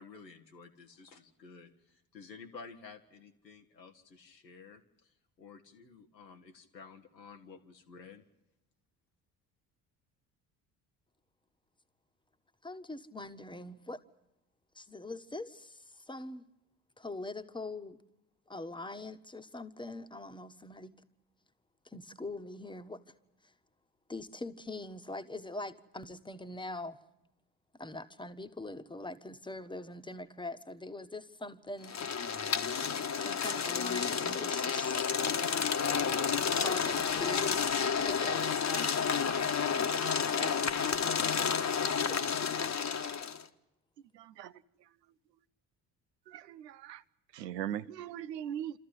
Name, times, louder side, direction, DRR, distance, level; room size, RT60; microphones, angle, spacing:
voice 1, 0.0-5.1 5.4-8.2, left 5 dB, 90° left, 1.6 m, -52 dB
voice 2, 12.6-14.0 14.7-16.4 17.0-18.0 18.5-20.9 21.8-23.0 23.4-23.5 24.1-27.0 27.8-32.0 33.1-35.7 36.5-38.9 42.0-42.2, left 2 dB, 10° left, 1.4 m, -43 dB
sound 1, 31.8-43.4, left 6 dB, 35° left, 1.4 m, -31 dB
voice 3, 46.3-47.0 47.3-48.7, right 10 dB, 80° right, 0.8 m, -39 dB
28.0 x 14.0 x 9.9 m
figure-of-eight pair, 50°, 49 cm